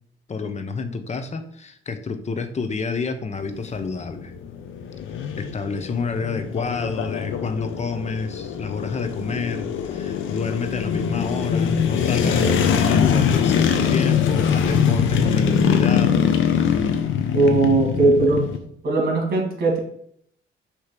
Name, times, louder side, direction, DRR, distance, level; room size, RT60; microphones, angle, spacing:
voice 1, 0.3-4.3 5.4-16.2, left 4 dB, 35° left, 8 dB, 0.9 m, -29 dB
sound 1, 3.3-18.6, left 7 dB, 80° left, 0.9 m, -22 dB
voice 2, 17.3-18.5 18.8-19.8, right 3 dB, 50° right, 0 dB, 2.4 m, -19 dB
6.5 x 3.2 x 6.0 m, 0.67 s
cardioid pair, 90°, 20 cm